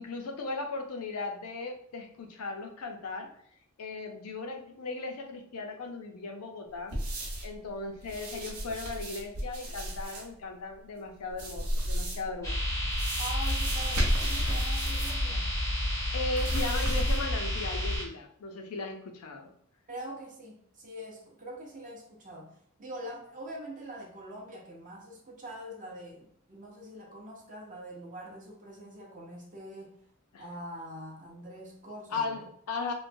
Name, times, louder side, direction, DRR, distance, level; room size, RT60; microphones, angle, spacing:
voice 1, 0.0-3.3 3.8-7.0 7.4-12.6 16.1-19.5 30.3-30.4 32.1-32.9, left 3 dB, 85° left, 4 dB, 0.5 m, -37 dB
sound 1, 6.9-7.6 8.0-10.2 11.3-12.3 12.9-15.3 15.5-15.6 16.3-17.4 17.9-18.0, equal, 80° right, 0.8 m, -33 dB
sound 2, 12.4-18.0, left 1 dB, 15° left, 0.5 m, -30 dB
voice 2, 13.2-15.5 19.9-30.0 30.4-32.5, right 1 dB, 35° right, -2 dB, 0.6 m, -44 dB
3.0 x 2.1 x 2.6 m, 0.64 s
head